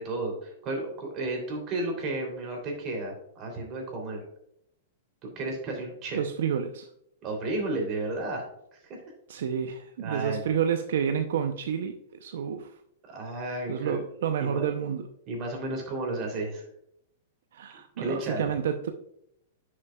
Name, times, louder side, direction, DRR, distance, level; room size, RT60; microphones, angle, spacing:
voice 1, 0.0-4.2 5.3-6.2 7.2-8.4 8.8-9.0 10.0-10.5 13.0-14.0 14.4-14.7 15.3-16.6 18.0-18.4, right 2 dB, 35° right, 1 dB, 3.1 m, -33 dB
voice 2, 6.1-6.9 9.3-12.7 13.7-15.1 17.5-18.9, right 8 dB, 75° right, 7 dB, 0.6 m, -29 dB
10.5 x 6.5 x 2.3 m, 0.73 s
hypercardioid pair, 140°, 0 cm